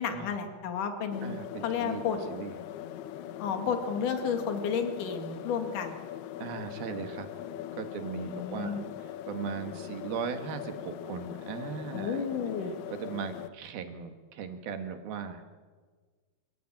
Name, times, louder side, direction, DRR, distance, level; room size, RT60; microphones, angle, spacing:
voice 1, 0.0-1.4 1.6-2.2 3.4-6.0 8.2-8.8 11.9-12.7, left 6 dB, 55° left, 6 dB, 3.4 m, -32 dB
sound 1, 1.1-13.5, left 11 dB, 90° left, 2.9 m, -41 dB
voice 2, 1.2-2.0 2.3-2.6 6.4-7.3 7.8-12.3 12.9-15.4, right 7 dB, 70° right, 7 dB, 3.4 m, -38 dB
28.0 x 14.5 x 8.9 m, 1.5 s
omnidirectional pair, 4.6 m